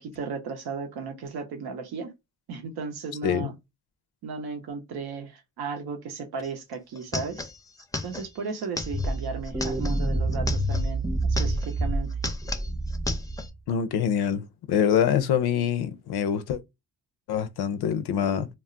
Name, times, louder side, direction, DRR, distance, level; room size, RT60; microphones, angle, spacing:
voice 1, 0.0-2.1 2.5-3.5 4.2-7.5 8.0-12.1, right 5 dB, 90° right, 0.6 m, -35 dB
sound 1, 6.4-6.5 6.7-10.9 11.2-11.8 12.1-13.5, left 2 dB, 10° left, 0.4 m, -35 dB
sound 2, 8.8-13.5, right 1 dB, 15° right, 0.8 m, -27 dB
voice 2, 13.7-16.6 17.3-18.5, left 8 dB, 85° left, 0.5 m, -25 dB
2.3 x 2.0 x 3.6 m
cardioid pair, 70°, 37 cm